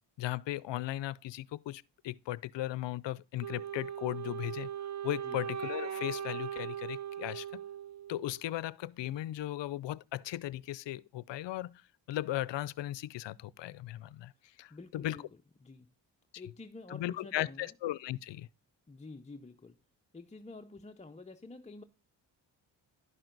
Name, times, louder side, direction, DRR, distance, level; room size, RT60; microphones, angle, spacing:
voice 1, 0.2-4.7 5.0-7.5 8.1-11.8 12.1-14.3 14.6-15.2 16.9-18.5, left 14 dB, 70° left, 0.5 m, -37 dB
Wind instrument woodwind instrument, 3.4-8.5, right 9 dB, 40° right, 0.5 m, -39 dB
voice 2, 14.7-15.3 15.6-15.9 16.4-17.7 18.9-19.8 20.1-21.8, left 3 dB, 15° left, 0.5 m, -49 dB
11.0 x 6.0 x 3.9 m
cardioid pair, 70°, 45 cm